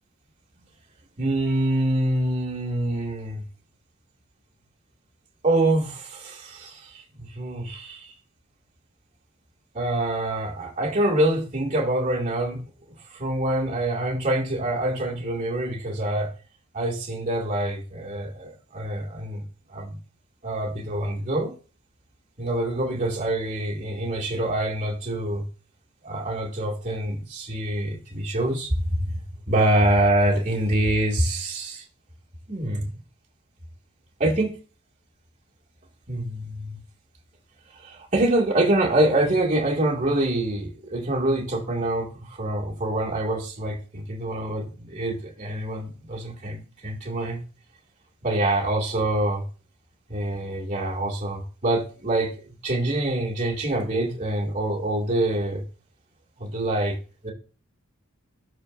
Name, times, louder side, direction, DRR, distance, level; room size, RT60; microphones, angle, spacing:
voice 1, 1.2-3.4 5.4-8.1 9.7-16.3 16.7-19.4 19.7-20.0 20.4-21.5 22.4-25.4 26.0-29.2 29.5-31.8 32.5-32.9 34.2-34.5 36.1-36.8 37.7-47.4 48.2-49.4 50.1-52.3 52.6-55.6 56.4-56.9 57.2-57.3, right 1 dB, 35° right, -4 dB, 2.1 m, -25 dB
13.0 x 4.5 x 2.5 m, 0.37 s
head